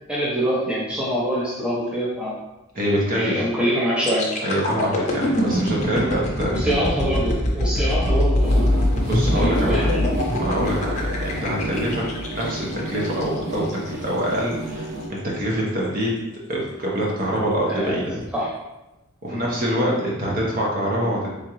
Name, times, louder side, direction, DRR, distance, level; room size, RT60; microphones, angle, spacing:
voice 1, 0.1-2.3 3.1-4.4 6.5-8.9 9.3-10.1 17.7-18.0 18.3-18.5 19.3-19.5, equal, 5° right, -6 dB, 0.5 m, -25 dB
voice 2, 2.7-3.4 4.4-6.8 9.0-9.9 10.4-12.0 12.3-16.1 16.5-18.2 19.2-21.3, equal, 40° right, -3 dB, 0.9 m, -25 dB
sound 1, 4.0-13.9 14.3-14.5, left 1 dB, 35° left, 0.7 m, -23 dB
sound 2, 8.4-15.1, right 1 dB, 70° right, 1.0 m, -31 dB
3.6 x 3.6 x 3.0 m, 0.99 s
head